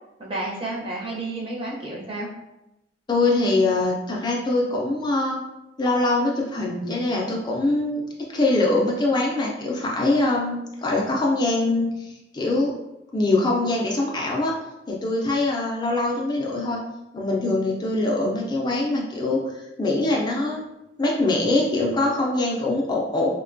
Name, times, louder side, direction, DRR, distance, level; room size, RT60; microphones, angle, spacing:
voice 1, 0.2-2.3, right 2 dB, 30° right, -3 dB, 0.6 m, -31 dB
voice 2, 3.1-5.4 5.8-12.7 13.1-14.5 14.9-16.8 17.1-20.6 21.0-23.3, left 2 dB, 25° left, -2 dB, 0.3 m, -23 dB
2.9 x 2.1 x 2.5 m, 0.93 s
head